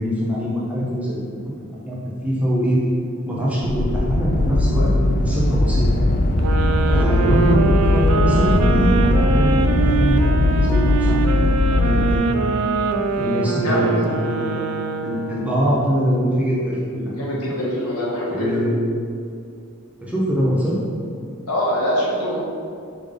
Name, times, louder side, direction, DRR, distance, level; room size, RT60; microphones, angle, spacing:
voice 1, 0.0-2.0 2.2-2.8 3.2-6.1 6.9-12.3 13.0-14.6 15.0-17.1 17.5-17.6 18.3-18.7 20.0-20.8, equal, 5° right, -7 dB, 0.9 m, -23 dB
sound 1, 3.6-12.1, left 2 dB, 40° left, 0.4 m, -19 dB
sound 2, 6.4-15.6, right 4 dB, 85° right, 0.4 m, -23 dB
voice 2, 6.8-7.2 13.6-13.9 17.2-18.6 21.5-22.4, equal, 90° left, -5 dB, 1.4 m, -24 dB
5.2 x 3.7 x 5.1 m, 2.3 s
head